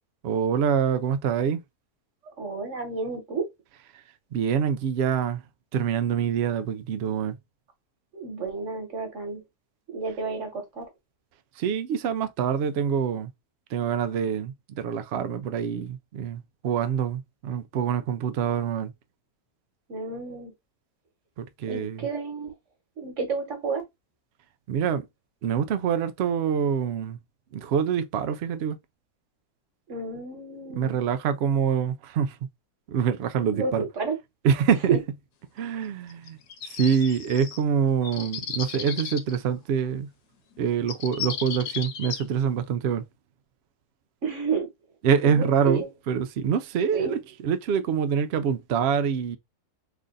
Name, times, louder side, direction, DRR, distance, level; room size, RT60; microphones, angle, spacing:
voice 1, 0.2-1.6 4.3-5.4 5.7-7.3 11.6-13.3 13.7-18.9 21.4-22.1 24.7-25.1 25.4-27.2 27.5-28.8 30.7-32.4 32.9-33.8 34.4-34.9 35.6-36.4 36.6-40.1 40.6-43.0 45.0-49.4, right 7 dB, 85° right, 0.5 m, -25 dB
voice 2, 2.4-3.4 8.1-9.4 9.9-10.9 19.9-20.5 21.7-22.5 23.0-23.8 29.9-31.0 33.6-34.1 34.9-35.0 44.2-44.7 45.2-45.9 46.9-47.2, right 5 dB, 50° right, 1.6 m, -30 dB
sound 1, 36.1-37.6 38.0-39.4 40.5-40.6 40.9-42.2, left 8 dB, 80° left, 1.3 m, -35 dB
3.3 x 2.5 x 3.8 m
omnidirectional pair, 1.7 m